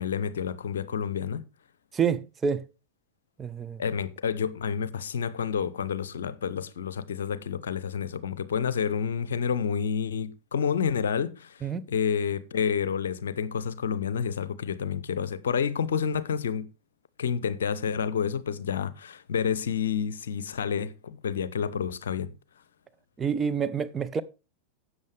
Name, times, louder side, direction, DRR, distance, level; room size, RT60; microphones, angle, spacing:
voice 1, 0.0-1.4 3.8-11.6 11.9-16.7 17.2-22.3, left 7 dB, 65° left, 0.7 m, -29 dB
voice 2, 1.9-2.6 3.4-3.8 11.6-11.9 23.2-24.2, right 6 dB, 20° right, 0.7 m, -28 dB
12.0 x 8.0 x 3.4 m
figure-of-eight pair, 90°, 0 cm